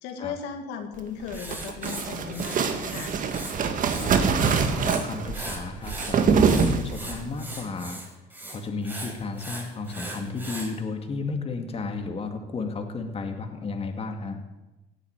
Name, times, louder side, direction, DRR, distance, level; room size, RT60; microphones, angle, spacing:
voice 1, 0.0-3.1, left 7 dB, 90° left, 5 dB, 2.1 m, -36 dB
sound 1, 1.2-7.2, right 6 dB, 50° right, 1.9 m, -24 dB
Writing, 1.3-3.6 3.8-5.0 5.3-10.7, right 1 dB, 10° right, 4.5 m, -39 dB
voice 2, 4.0-8.0 8.5-14.4, left 4 dB, 35° left, 5 dB, 2.3 m, -33 dB
17.0 x 8.2 x 9.6 m, 1.0 s
cardioid pair, 110°, 17 cm